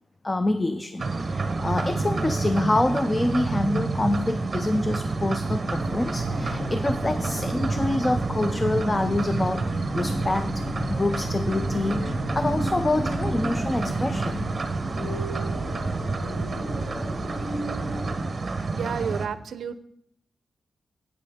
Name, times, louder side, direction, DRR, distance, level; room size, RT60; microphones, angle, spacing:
voice 1, 0.2-10.6 10.9-12.0 12.3-14.5, left 2 dB, 20° left, 11 dB, 0.3 m, -26 dB
sound 1, 1.0-19.3, right 3 dB, 30° right, 0.7 m, -29 dB
sound 2, 5.7-18.2, left 1 dB, 40° left, 2.1 m, -35 dB
voice 2, 18.7-19.8, right 7 dB, 75° right, 14 dB, 0.5 m, -31 dB
9.2 x 8.4 x 3.5 m, 0.74 s
wide cardioid pair, 140°, 0 cm